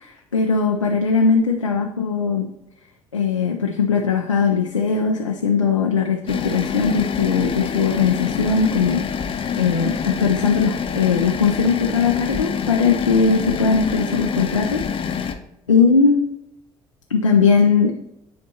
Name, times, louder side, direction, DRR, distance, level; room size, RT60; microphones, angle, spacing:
voice 1, 0.0-2.5 3.1-14.8 15.1-15.3 15.7-16.2 17.1-18.0, left 5 dB, 85° left, 2 dB, 0.4 m, -19 dB
sound 1, 6.3-15.4, left 6 dB, 35° left, 0.7 m, -26 dB
9.4 x 4.3 x 2.8 m, 0.87 s
figure-of-eight pair, 50°, 16 cm